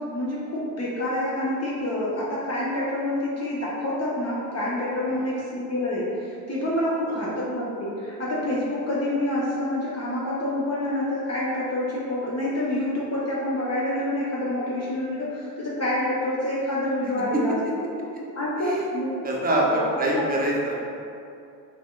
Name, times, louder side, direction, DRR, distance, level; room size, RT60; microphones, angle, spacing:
voice 1, 0.0-17.6 18.3-19.1 19.5-19.6 20.1-20.2, left 1 dB, 35° left, -7 dB, 0.7 m, -27 dB
voice 2, 18.6-18.9 19.2-20.7, right 1 dB, 20° right, -3 dB, 0.6 m, -25 dB
3.4 x 2.4 x 2.3 m, 2.5 s
supercardioid pair, 70°, 47 cm